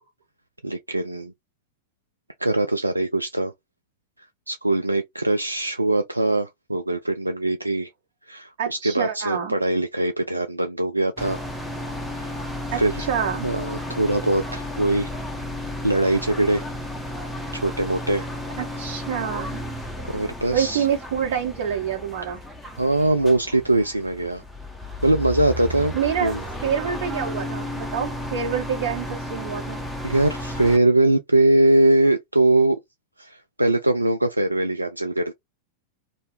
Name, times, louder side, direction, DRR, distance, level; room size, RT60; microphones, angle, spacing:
voice 1, 0.6-1.3 2.4-3.5 4.5-7.9 8.3-11.4 12.1-12.4 12.8-13.1 13.4-15.1 15.8-16.6 17.5-18.3 20.0-20.9 22.8-24.4 25.0-25.9 26.2-26.4 30.0-32.8 33.2-35.3, right 2 dB, 85° right, 0.3 m, -22 dB
voice 2, 8.6-9.6 11.9-12.0 12.7-12.8 13.1-13.5 18.6-19.6 20.0-20.1 20.5-22.4 25.9-26.4 26.6-29.8, right 8 dB, 50° right, 1.4 m, -27 dB
sound 1, 11.2-30.8, left 1 dB, ahead, 0.7 m, -33 dB
2.7 x 2.2 x 3.1 m
figure-of-eight pair, 90°, 0 cm